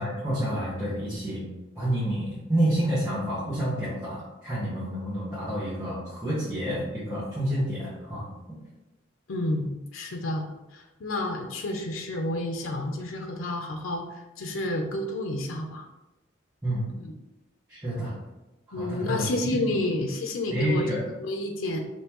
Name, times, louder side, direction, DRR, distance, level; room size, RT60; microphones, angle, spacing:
voice 1, 0.0-1.4 1.7-8.2 16.6-16.9 17.7-18.1 18.7-19.2 20.5-21.0, right 1 dB, 10° right, -11 dB, 1.3 m, -29 dB
voice 2, 9.3-10.5 10.7-15.8 17.0-17.1 18.7-21.8, left 1 dB, 90° left, 3 dB, 0.6 m, -30 dB
5.4 x 3.1 x 3.0 m, 1.0 s
head